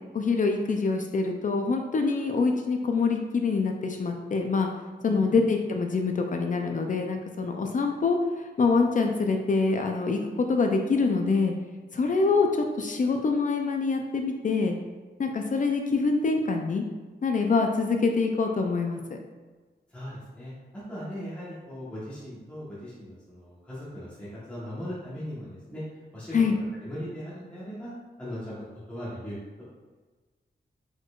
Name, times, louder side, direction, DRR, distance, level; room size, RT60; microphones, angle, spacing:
voice 1, 0.1-4.7 5.0-11.5 11.9-14.8 15.2-16.8 17.2-19.2 26.3-26.6, left 4 dB, 45° left, 4 dB, 0.4 m, -25 dB
voice 2, 5.0-5.4 19.9-20.5 20.9-25.8 26.1-26.4 26.8-27.9 28.2-28.6 28.9-29.6, equal, 5° left, -11 dB, 1.1 m, -38 dB
4.6 x 4.3 x 2.4 m, 1.3 s
wide cardioid pair, 165°, 18 cm